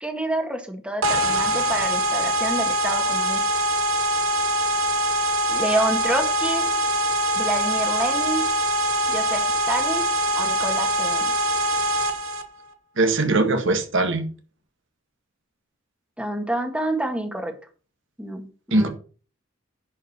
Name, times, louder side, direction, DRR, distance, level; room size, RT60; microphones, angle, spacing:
voice 1, 0.0-3.5 5.5-6.6 7.4-8.4 9.1-10.0 10.3-11.3 16.2-17.5 18.2-18.9, right 1 dB, 5° right, 1.7 m, -28 dB
sound 1, 1.0-12.4, right 1 dB, 90° right, 1.1 m, -23 dB
voice 2, 13.0-14.3 18.7-18.9, right 2 dB, 65° right, 1.8 m, -20 dB
10.5 x 5.3 x 5.7 m
head